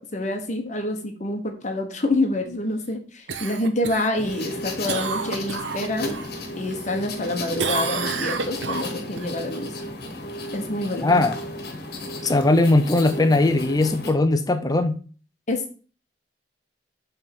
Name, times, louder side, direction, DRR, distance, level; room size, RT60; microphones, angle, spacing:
voice 1, 0.1-6.2 6.5-9.7 10.5-11.3 15.5-15.8, left 2 dB, 40° left, 1.0 m, -27 dB
Cough, 3.3-6.3 6.7-7.3 7.6-9.3 13.7-13.8, right 5 dB, 80° right, 0.8 m, -30 dB
sound 1, 4.2-14.1, left 1 dB, 60° left, 1.3 m, -34 dB
voice 2, 11.0-11.4 12.2-15.0, left 2 dB, 20° left, 0.5 m, -19 dB
7.0 x 3.4 x 5.9 m
head